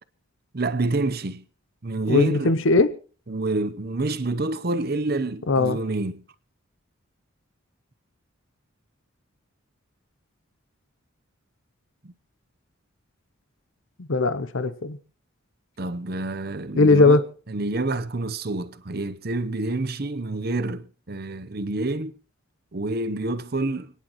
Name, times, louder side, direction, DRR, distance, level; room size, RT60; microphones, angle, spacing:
voice 1, 0.5-1.4 1.8-2.6 3.3-6.2 12.0-12.1 15.8-17.2 17.5-22.1 22.7-23.9, right 2 dB, 45° right, 0.8 m, -28 dB
voice 2, 2.1-2.9 5.5-5.8 14.1-15.0 16.8-17.2, left 3 dB, 65° left, 0.7 m, -19 dB
29.0 x 10.0 x 3.0 m
head